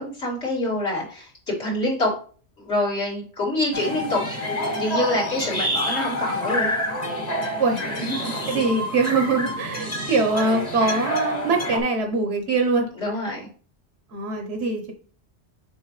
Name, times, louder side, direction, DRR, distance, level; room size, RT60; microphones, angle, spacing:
voice 1, 0.0-2.1 2.6-4.3 4.5-6.7 8.0-8.3 13.0-13.5, left 1 dB, 65° left, -5 dB, 2.9 m, -26 dB
sound 1, 3.7-11.8, equal, 35° left, 1.3 m, -28 dB
voice 2, 8.5-12.9 14.1-14.9, right 3 dB, 80° right, 3 dB, 1.3 m, -23 dB
7.0 x 4.5 x 3.2 m, 0.42 s
omnidirectional pair, 1.2 m